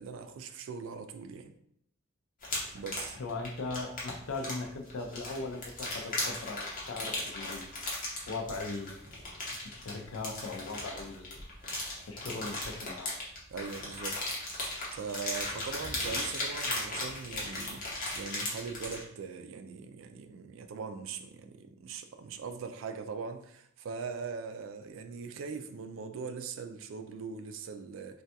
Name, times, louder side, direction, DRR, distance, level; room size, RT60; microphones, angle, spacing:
voice 1, 0.0-1.5 2.7-3.2 13.5-14.2 14.9-28.2, right 5 dB, 70° right, 0.3 m, -41 dB
sound 1, 2.4-19.0, left 2 dB, 40° left, 0.9 m, -37 dB
voice 2, 3.1-7.7 8.3-9.0 9.6-11.4 12.1-13.1, left 3 dB, 80° left, 0.5 m, -39 dB
3.3 x 2.3 x 2.7 m
head